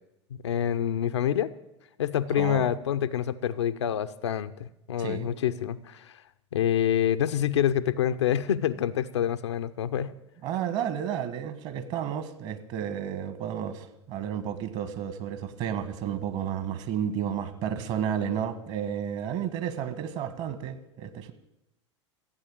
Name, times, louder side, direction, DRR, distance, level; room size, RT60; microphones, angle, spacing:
voice 1, 0.3-1.5 2.0-6.1 6.5-10.1, left 9 dB, 70° left, 11 dB, 0.7 m, -27 dB
voice 2, 2.3-2.7 5.0-5.3 10.4-21.3, right 9 dB, 45° right, 11 dB, 1.6 m, -32 dB
14.5 x 8.5 x 8.7 m, 0.88 s
figure-of-eight pair, 80°, 15 cm